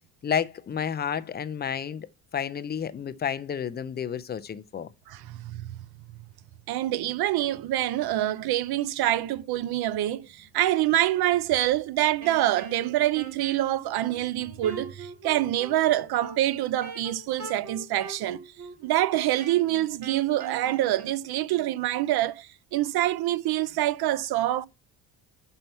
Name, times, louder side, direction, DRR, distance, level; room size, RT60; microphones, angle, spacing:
voice 1, 0.2-4.9, left 8 dB, 25° left, 0.4 m, -31 dB
voice 2, 5.1-5.8 6.7-18.4 18.8-24.7, right 14 dB, 60° right, 0.6 m, -26 dB
Wind instrument woodwind instrument, 12.2-21.2, right 4 dB, 40° right, 2.8 m, -42 dB
5.6 x 4.5 x 5.4 m
cardioid pair, 115°, 42 cm